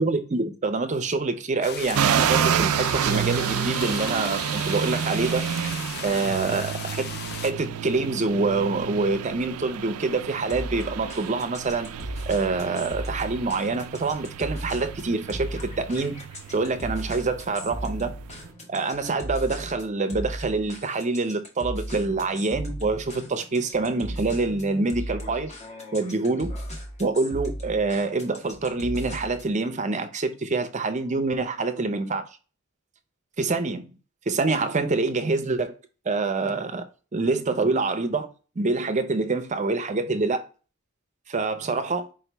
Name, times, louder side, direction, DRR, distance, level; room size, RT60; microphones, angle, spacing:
voice 1, 0.0-5.4 6.0-7.0 7.4-11.9 12.3-16.2 16.5-18.1 18.7-25.5 25.9-26.5 27.0-32.3 33.4-33.9 34.3-35.8 36.1-36.8 37.1-38.3 38.6-40.5 41.3-42.1, right 3 dB, 35° right, 0.5 m, -26 dB
sound 1, 1.6-7.5, left 9 dB, 50° left, 0.3 m, -37 dB
sound 2, 1.9-18.5, right 9 dB, 85° right, 0.4 m, -30 dB
sound 3, 10.5-29.6, equal, 30° left, 1.1 m, -37 dB
4.8 x 3.0 x 3.3 m
head